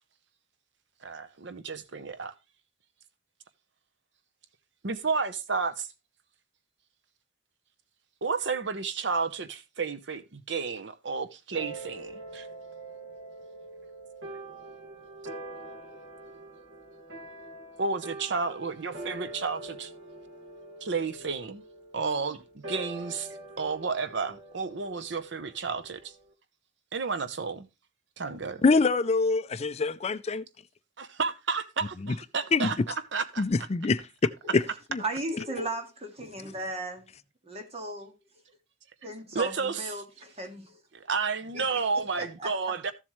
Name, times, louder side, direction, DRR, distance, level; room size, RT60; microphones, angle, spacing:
voice 1, 1.0-2.3 4.8-5.9 8.2-12.5 17.8-19.9 20.8-21.6 21.9-22.4 22.7-23.3 23.6-26.1 26.9-27.7 28.2-28.6 31.0-33.4 39.3-39.9 40.9-42.9, right 4 dB, 70° right, 0.9 m, -31 dB
sound 1, 11.6-26.3, right 2 dB, 85° right, 2.0 m, -44 dB
voice 2, 28.6-30.4 32.5-32.7 33.4-34.6 34.9-35.0, left 4 dB, 35° left, 0.4 m, -25 dB
voice 3, 35.0-37.0 37.4-38.2 39.0-40.8 41.5-42.5, right 1 dB, 35° right, 2.0 m, -36 dB
14.5 x 7.4 x 3.1 m
head